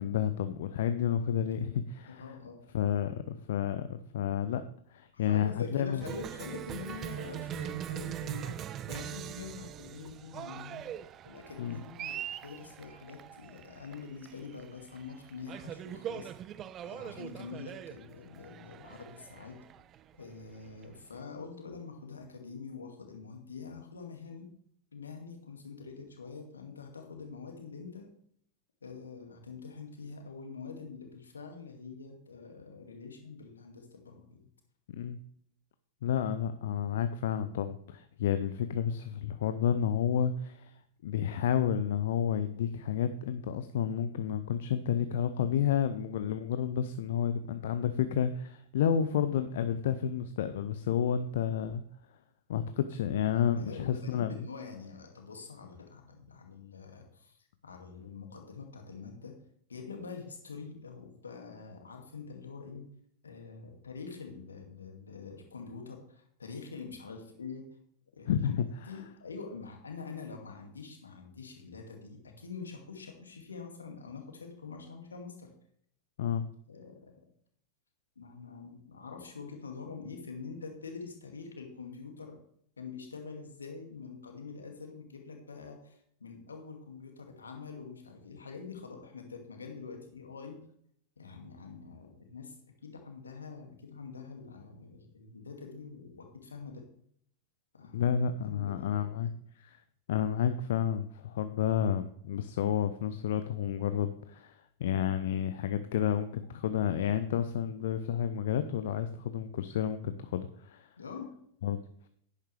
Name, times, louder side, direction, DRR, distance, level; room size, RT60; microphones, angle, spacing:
voice 1, 0.0-2.2 2.7-4.6 4.9-6.0 11.6-11.8 34.9-35.2 36.0-40.7 41.0-51.8 52.5-54.3 68.3-69.0 76.2-76.5 97.9-99.8 100.1-110.9 111.6-111.8, left 9 dB, 55° left, 11 dB, 0.6 m, -30 dB
voice 2, 2.1-2.6 5.1-8.6 8.9-10.8 11.2-16.4 16.8-19.6 20.2-24.5 24.9-28.1 28.8-34.4 53.5-59.3 59.7-62.9 63.2-67.6 68.1-68.5 68.9-75.5 76.7-77.1 78.2-82.4 82.8-90.6 91.2-92.5 92.8-96.9 97.7-99.2 111.0-111.3, left 5 dB, 75° left, 3 dB, 2.2 m, -45 dB
Cheering, 6.0-21.2, right 11 dB, 30° right, 0.5 m, -42 dB
11.0 x 10.0 x 3.3 m, 0.66 s
figure-of-eight pair, 90°, 0 cm